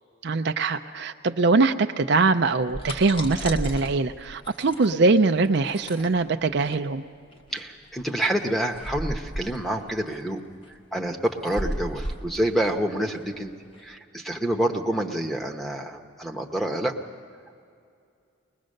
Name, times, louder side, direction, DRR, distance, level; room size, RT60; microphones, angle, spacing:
voice 1, 0.2-7.0, right 3 dB, 55° right, 7 dB, 0.5 m, -22 dB
sound 1, 2.4-13.8, equal, 25° left, 1.1 m, -36 dB
voice 2, 7.5-10.4 10.9-13.5 13.8-17.0, right 1 dB, ahead, 0 dB, 0.9 m, -27 dB
21.0 x 20.5 x 6.5 m, 2.4 s
head